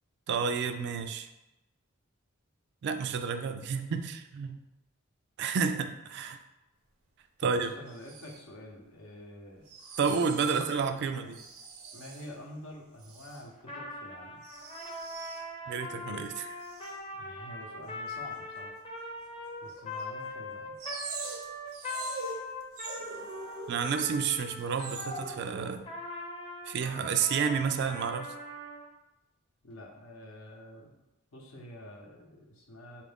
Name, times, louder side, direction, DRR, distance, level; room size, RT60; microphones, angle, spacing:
voice 1, 0.3-1.3 2.8-4.6 5.4-6.4 7.4-7.7 10.0-11.4 15.7-16.6 23.7-25.8 26.7-28.3, right 6 dB, 55° right, 8 dB, 0.3 m, -30 dB
voice 2, 7.4-9.7 10.5-11.4 11.9-14.4 17.2-18.8 19.6-20.8 29.6-31.0 31.3-33.0, left 1 dB, 75° left, 1 dB, 0.8 m, -47 dB
sound 1, 7.9-8.4 9.6-10.7 11.3-12.3 13.0-13.4 14.4-15.4 16.6-17.0 18.1-18.2 19.5-19.6 20.0-20.1 20.8-24.3 24.6-25.8, right 4 dB, 85° right, 0.6 m, -42 dB
Trumpet, 13.6-25.4 25.8-28.8, left 2 dB, 25° left, 0.6 m, -41 dB
4.4 x 2.5 x 3.4 m, 0.98 s
head